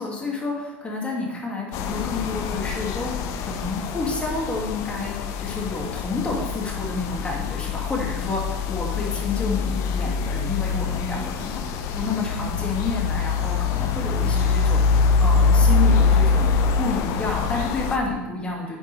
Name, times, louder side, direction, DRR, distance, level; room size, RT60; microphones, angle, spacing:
voice 1, 0.0-18.8, left 3 dB, 15° left, -2 dB, 2.1 m, -29 dB
sound 1, 1.7-18.0, left 5 dB, 50° left, 0.6 m, -24 dB
9.2 x 4.5 x 3.3 m, 1.1 s
hypercardioid pair, 80°, 7 cm